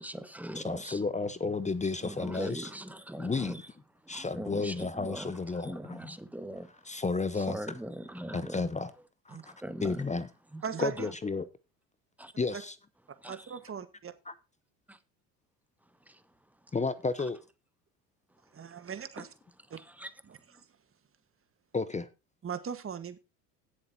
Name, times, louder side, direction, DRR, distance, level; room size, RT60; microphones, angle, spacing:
voice 1, 0.0-1.0 2.0-3.6 4.0-6.7 7.3-8.6 9.3-10.1 10.5-10.6 11.0-11.1 12.2-12.3 13.2-13.6 14.9-15.0 16.1-16.2 19.8-20.1, right 1 dB, 5° right, 1.2 m, -41 dB
voice 2, 0.5-2.7 3.2-3.5 4.1-6.0 6.9-7.6 8.3-8.9 9.8-10.3 10.8-11.5 12.4-12.7 14.3-14.4 16.7-17.4 21.7-22.0, left 4 dB, 15° left, 0.8 m, -32 dB
voice 3, 10.6-11.1 12.5-12.6 13.3-14.1 18.5-19.3 19.7-19.8 20.3-20.7 22.4-23.2, right 7 dB, 25° right, 1.5 m, -39 dB
16.5 x 7.2 x 2.8 m
hypercardioid pair, 70°, 47 cm